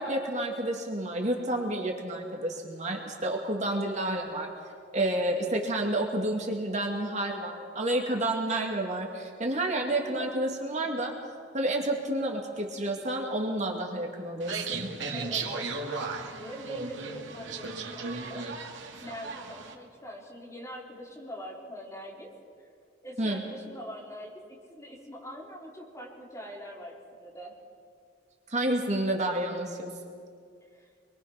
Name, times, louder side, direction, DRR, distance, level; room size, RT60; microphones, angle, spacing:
voice 1, 0.0-4.5 4.9-11.1 11.5-14.9 23.2-23.4 28.5-29.9, right 1 dB, 40° right, 1 dB, 2.4 m, -30 dB
voice 2, 10.0-10.3 15.1-18.4 19.0-22.3 22.6-22.7 23.0-27.5 30.7-30.9, equal, 15° left, -3 dB, 4.0 m, -43 dB
sound 1, 14.4-19.7, right 4 dB, 75° right, 2.2 m, -36 dB
25.5 x 23.0 x 5.9 m, 2.2 s
head